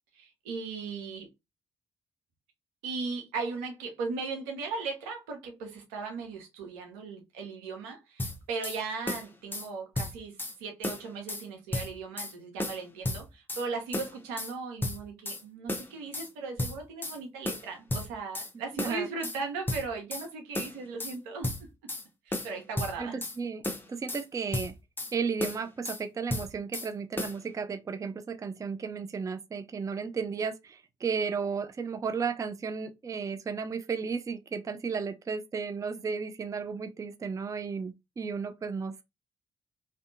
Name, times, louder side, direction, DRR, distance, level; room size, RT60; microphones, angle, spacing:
voice 1, 0.1-1.3 2.8-21.5 22.3-23.2, right 4 dB, 80° right, 0.7 m, -37 dB
sound 1, 8.2-8.8 9.1-9.7 9.9-10.5 10.8-11.4 11.7-12.3 12.6-13.6 13.9-14.5 14.8-15.4 15.7-16.3 16.6-17.2 17.4-18.5 18.8-19.4 19.7-20.3 20.5-21.2 21.4-22.0 22.3-23.4 23.6-24.2 24.5-25.1 25.4-26.0 26.3-26.9 27.2-27.4, left 1 dB, 15° left, 0.7 m, -34 dB
voice 2, 23.0-24.7 25.1-39.0, right 5 dB, 25° right, 0.4 m, -34 dB
2.6 x 2.2 x 2.5 m
hypercardioid pair, 45°, 14 cm